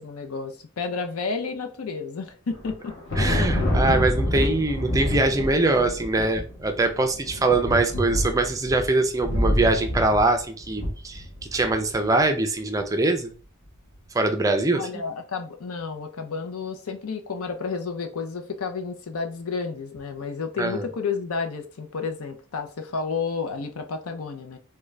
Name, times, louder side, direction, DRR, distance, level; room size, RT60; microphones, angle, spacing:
voice 1, 0.0-2.9 14.7-24.6, left 4 dB, 80° left, 0.6 m, -31 dB
Thunder, 2.5-11.9, left 1 dB, 55° left, 1.2 m, -27 dB
voice 2, 3.2-11.2 11.5-13.3 14.1-15.0 20.6-20.8, right 2 dB, 15° right, 0.3 m, -23 dB
3.6 x 2.2 x 3.2 m
head